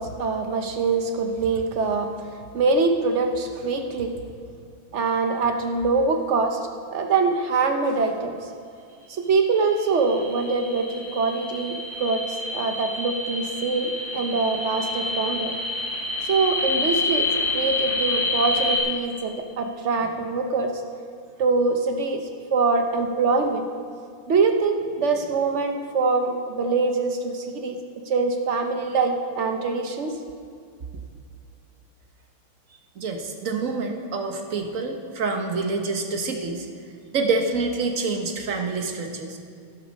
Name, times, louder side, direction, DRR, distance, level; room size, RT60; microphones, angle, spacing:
voice 1, 0.0-2.1 2.5-4.1 4.9-6.6 6.9-8.3 9.3-12.2 12.5-15.5 16.3-17.3 17.5-20.7 21.4-22.2 22.5-23.6 24.3-27.8 28.1-30.1, right 4 dB, 70° right, 5 dB, 0.6 m, -24 dB
sound 1, 9.3-18.8, left 2 dB, 75° left, 4.1 m, -28 dB
voice 2, 32.9-36.7 37.1-39.4, right 4 dB, 45° right, 4 dB, 1.2 m, -27 dB
12.5 x 11.5 x 5.2 m, 2.4 s
omnidirectional pair, 2.4 m